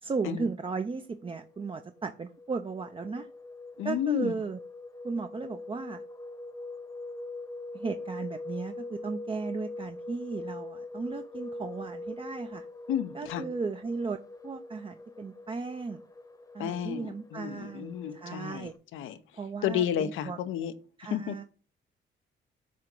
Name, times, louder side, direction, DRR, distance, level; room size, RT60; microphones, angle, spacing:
voice 1, 0.0-3.3 3.8-4.6 5.0-6.0 7.7-12.7 13.1-14.2 14.4-16.0 16.5-18.7 19.3-20.4 21.0-21.4, right 4 dB, 25° right, 0.5 m, -35 dB
sound 1, 1.0-18.8, left 2 dB, 15° left, 0.9 m, -43 dB
voice 2, 3.8-4.3 12.9-13.4 16.6-19.2 19.6-20.7 21.1-21.3, left 10 dB, 85° left, 0.7 m, -32 dB
7.5 x 2.9 x 5.2 m
cardioid pair, 90°, 20 cm